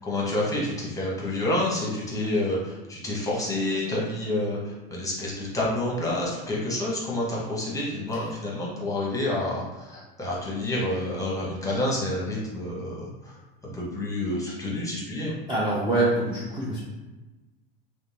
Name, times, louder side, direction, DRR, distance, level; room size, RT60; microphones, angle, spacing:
voice 1, 0.0-13.4 13.7-15.3, left 1 dB, 10° left, -5 dB, 0.9 m, -28 dB
voice 2, 15.5-16.8, right 2 dB, 15° right, -7 dB, 0.5 m, -25 dB
2.6 x 2.0 x 3.3 m, 1.1 s
supercardioid pair, 110°, 31 cm